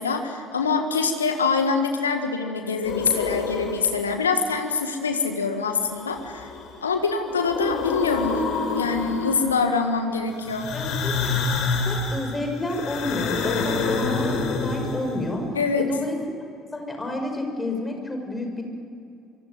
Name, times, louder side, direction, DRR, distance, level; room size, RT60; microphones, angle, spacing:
voice 1, 0.0-6.5 6.8-8.4 8.7-10.7 15.5-15.9, left 4 dB, 80° left, 6 dB, 1.6 m, -24 dB
sound 1, 2.8-4.1 5.8-6.8 7.1-9.7 10.4-15.3, left 4 dB, 55° left, 4.1 m, -28 dB
voice 2, 10.7-15.5 15.8-16.2 16.7-18.6, left 2 dB, 20° left, 4 dB, 6.2 m, -30 dB
26.5 x 23.5 x 9.5 m, 2.5 s
figure-of-eight pair, 55°, 0 cm